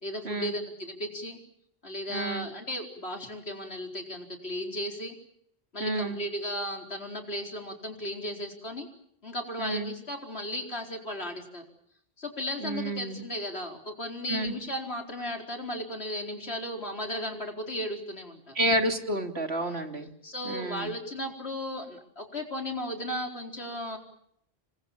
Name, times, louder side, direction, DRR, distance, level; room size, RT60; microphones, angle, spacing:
voice 1, 0.0-1.4 1.8-5.2 5.7-8.9 9.2-11.6 12.2-18.5 19.6-19.8 20.2-24.0, left 1 dB, 80° left, 3 dB, 4.7 m, -35 dB
voice 2, 2.1-2.5 5.8-6.2 9.6-9.9 12.6-13.2 14.3-14.6 18.5-20.1 20.4-20.9, right 1 dB, 80° right, 5 dB, 3.2 m, -30 dB
28.5 x 22.5 x 7.5 m, 0.72 s
omnidirectional pair, 1.1 m